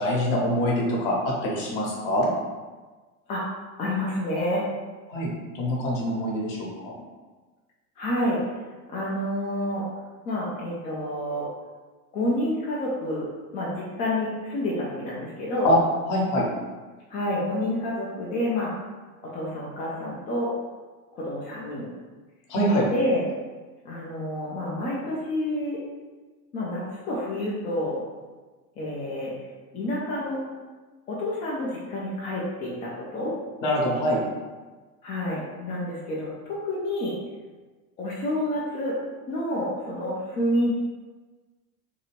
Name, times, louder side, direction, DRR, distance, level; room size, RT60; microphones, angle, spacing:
voice 1, 0.0-2.3 5.1-5.3 5.6-6.9 15.6-15.8 16.1-16.5 22.5-22.9 33.6-34.2, equal, 45° left, -3 dB, 0.9 m, -24 dB
voice 2, 3.8-4.6 8.0-8.4 8.9-9.8 10.3-11.5 12.1-13.3 13.5-15.7 17.1-18.7 19.3-20.5 21.1-21.9 22.9-23.2 23.8-25.8 26.5-28.0 28.8-29.3 29.7-30.4 31.1-33.3 35.0-37.1 38.0-39.0 39.3-40.9, left 1 dB, 20° left, -6 dB, 0.3 m, -28 dB
2.7 x 2.3 x 3.1 m, 1.3 s
figure-of-eight pair, 75°, 46 cm